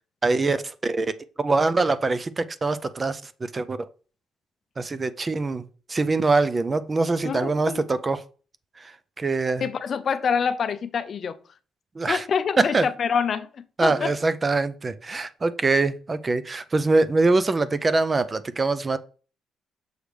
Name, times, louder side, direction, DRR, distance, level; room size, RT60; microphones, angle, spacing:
voice 1, 0.2-1.1 1.4-3.8 4.8-8.2 8.8-9.7 12.0-12.2 12.6-12.9 13.8-19.0, right 3 dB, 30° right, 0.5 m, -24 dB
voice 2, 7.2-7.8 9.6-11.4 12.1-14.1, left 6 dB, 50° left, 0.5 m, -26 dB
6.4 x 3.3 x 5.0 m
cardioid pair, 90°, 0 cm